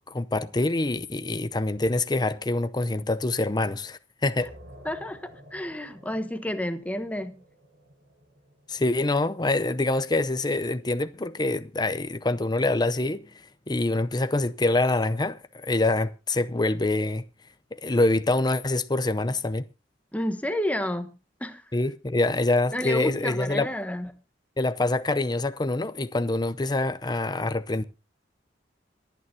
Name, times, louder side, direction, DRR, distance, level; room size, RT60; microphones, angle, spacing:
voice 1, 0.1-4.5 8.7-13.3 13.7-17.2 17.7-19.6 21.7-23.7 24.6-27.8, left 2 dB, 25° left, 0.6 m, -25 dB
sound 1, 4.4-9.7, equal, 70° right, 6.1 m, -51 dB
voice 2, 4.8-7.4 20.1-21.1 21.4-21.6 22.7-24.1, left 1 dB, 10° left, 1.1 m, -30 dB
27.0 x 9.2 x 2.8 m
head